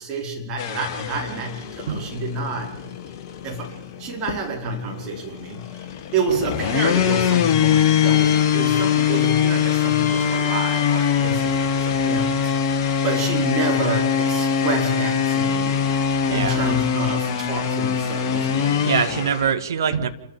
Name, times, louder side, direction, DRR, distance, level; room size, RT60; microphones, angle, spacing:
voice 1, 0.0-2.8 3.4-3.7 4.0-5.8 6.1-12.4 12.7-15.8 16.3-19.1, right 3 dB, 30° right, 0 dB, 4.9 m, -29 dB
sound 1, 0.6-19.5, left 8 dB, 35° left, 1.8 m, -22 dB
voice 2, 16.2-16.6 18.8-20.1, right 7 dB, 60° right, 8 dB, 1.8 m, -23 dB
27.5 x 13.5 x 7.6 m, 0.86 s
figure-of-eight pair, 110°, 2 cm